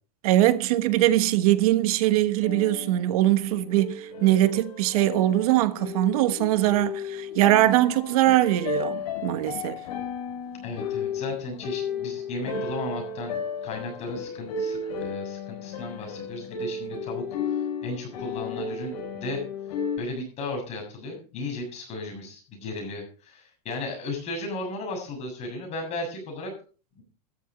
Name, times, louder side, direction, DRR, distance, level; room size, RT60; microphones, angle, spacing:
voice 1, 0.2-9.8, right 15 dB, 65° right, 1.3 m, -22 dB
sound 1, 2.4-20.0, left 5 dB, 70° left, 6.2 m, -34 dB
voice 2, 10.6-13.4 13.6-19.4 20.0-26.5 27.0-27.1, left 2 dB, 30° left, 7.0 m, -35 dB
13.5 x 11.5 x 4.0 m
supercardioid pair, 145°, 20 cm